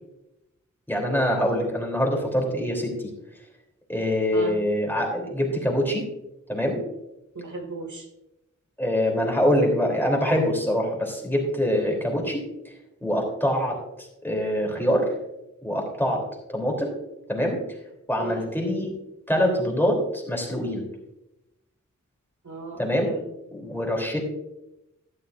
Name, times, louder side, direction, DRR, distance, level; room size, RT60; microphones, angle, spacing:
voice 1, 0.9-3.1 3.9-6.1 6.5-6.8 8.8-12.4 13.0-15.1 15.6-16.2 16.5-16.9 17.3-17.6 18.1-18.9 19.3-20.9 22.8-23.2 23.5-24.2, equal, 5° left, -1 dB, 3.3 m, -24 dB
voice 2, 4.3-4.7 7.4-8.1 18.2-18.5 22.4-23.3, right 2 dB, 70° right, 2 dB, 1.9 m, -36 dB
13.0 x 11.0 x 2.6 m, 0.91 s
wide cardioid pair, 80°, 31 cm